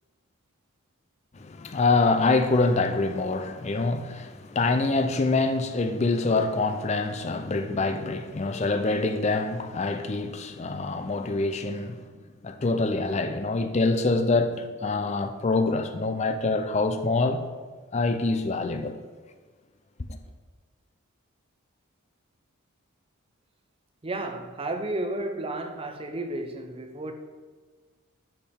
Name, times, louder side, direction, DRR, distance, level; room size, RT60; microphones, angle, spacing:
voice 1, 1.3-12.0 12.4-17.5 17.9-19.0, left 3 dB, 30° left, 0.4 m, -25 dB
voice 2, 24.0-27.1, right 2 dB, 25° right, 0.5 m, -32 dB
10.0 x 4.4 x 3.6 m
head